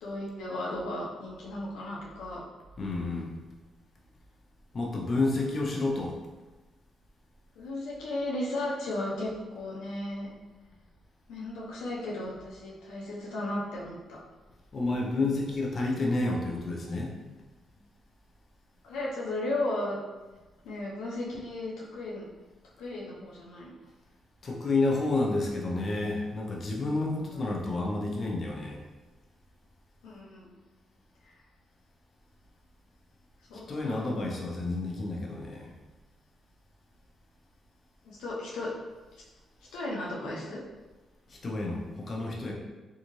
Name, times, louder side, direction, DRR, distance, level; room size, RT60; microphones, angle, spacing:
voice 1, 0.0-2.4 7.6-10.3 11.3-14.2 18.8-20.0 20.6-22.2 22.8-23.7 27.3-27.5 30.0-30.6 31.2-31.3 33.5-34.3 38.0-38.7 39.7-40.6, left 1 dB, 85° left, -5 dB, 0.5 m, -35 dB
voice 2, 2.8-3.3 4.7-6.2 14.7-17.1 24.4-28.8 33.5-35.7 41.3-42.5, left 2 dB, 45° left, -1 dB, 0.6 m, -30 dB
2.7 x 2.4 x 3.0 m, 1.2 s
supercardioid pair, 65°, 0 cm